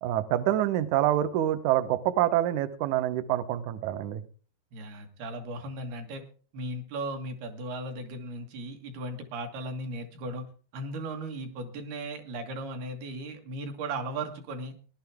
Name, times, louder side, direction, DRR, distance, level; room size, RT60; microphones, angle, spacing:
voice 1, 0.0-4.2, right 12 dB, 90° right, 11 dB, 1.7 m, -26 dB
voice 2, 4.7-6.2 6.5-10.5 10.7-14.7, right 2 dB, 70° right, 5 dB, 3.7 m, -36 dB
18.5 x 11.5 x 3.5 m, 0.38 s
omnidirectional pair, 4.8 m